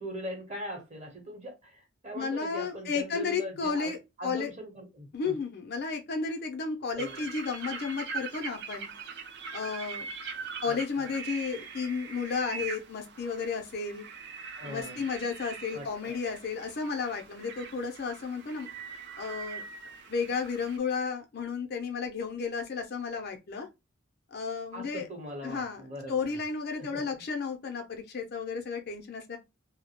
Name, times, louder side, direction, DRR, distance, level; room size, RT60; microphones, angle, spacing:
voice 1, 0.0-5.3 7.0-7.2 10.6-11.1 14.6-15.0 15.7-16.2 24.7-26.2 26.8-27.2, equal, 35° right, 0.9 m, -41 dB
voice 2, 2.1-4.0 4.2-4.5 5.1-8.9 9.5-10.1 10.6-14.0 14.6-18.7 19.2-19.6 20.1-23.7 24.3-25.1 25.4-25.8 26.1-29.4, left 5 dB, 50° left, 0.5 m, -33 dB
sound 1, 7.0-20.8, right 5 dB, 55° right, 0.4 m, -42 dB
2.3 x 2.0 x 2.8 m
head